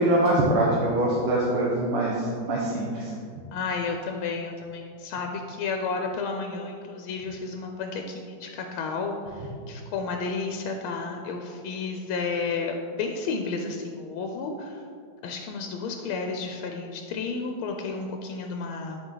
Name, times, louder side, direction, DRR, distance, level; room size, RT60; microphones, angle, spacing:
voice 1, 0.0-3.1, right 1 dB, 90° right, -4 dB, 1.9 m, -23 dB
voice 2, 3.5-14.8 15.2-19.0, left 4 dB, 85° left, 3 dB, 1.5 m, -32 dB
10.5 x 4.6 x 3.9 m, 2.2 s
omnidirectional pair, 2.3 m